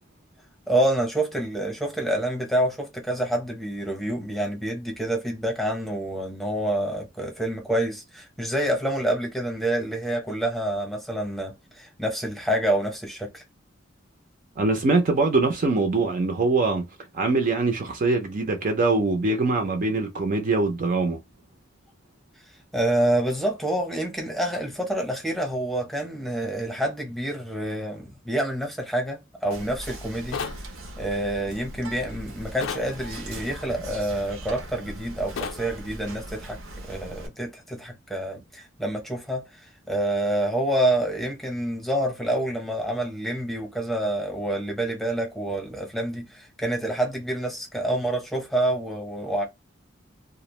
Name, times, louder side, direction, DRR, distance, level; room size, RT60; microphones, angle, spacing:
voice 1, 0.7-13.4 22.7-30.4 31.0-36.6 36.8-49.4, right 1 dB, ahead, 0.8 m, -27 dB
voice 2, 14.6-16.9 17.1-21.2, right 3 dB, 45° right, 0.5 m, -23 dB
Whispering, 29.5-37.3, right 1 dB, 85° right, 0.6 m, -39 dB
sound 1, 30.3-30.6 32.6-32.9 35.4-35.6, left 6 dB, 75° left, 0.4 m, -31 dB
2.3 x 2.0 x 2.9 m
head